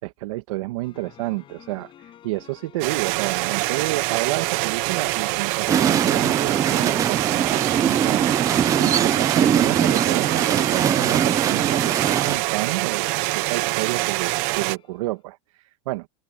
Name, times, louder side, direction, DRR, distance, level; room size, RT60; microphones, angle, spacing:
voice 1, 0.0-16.1, right 19 dB, 70° right, 2.4 m, -30 dB
sound 1, 0.8-15.1, left 11 dB, 30° left, 7.7 m, -49 dB
sound 2, 2.8-14.8, right 23 dB, 50° right, 1.0 m, -25 dB
sound 3, 5.7-12.4, right 8 dB, 20° right, 0.7 m, -22 dB
open air
supercardioid pair, 145°, 18 cm